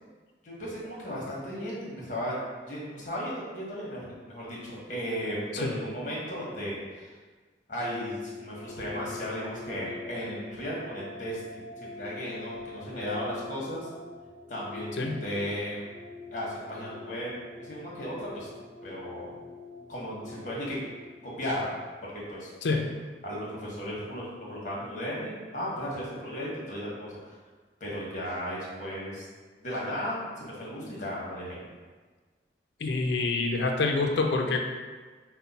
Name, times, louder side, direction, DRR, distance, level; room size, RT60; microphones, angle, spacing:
voice 1, 0.4-2.4 2.6-7.1 7.7-13.9 14.5-15.8 16.3-17.3 17.6-18.5 18.8-19.3 19.9-20.8 21.2-21.7 22.0-22.5 23.2-27.4 27.8-29.2 29.6-31.6, equal, 45° left, -5 dB, 1.3 m, -35 dB
sound 1, 7.8-21.6, left 3 dB, 10° right, 0.7 m, -44 dB
voice 2, 32.8-34.6, left 3 dB, 70° left, 3 dB, 0.5 m, -26 dB
5.5 x 2.2 x 4.1 m, 1.4 s
head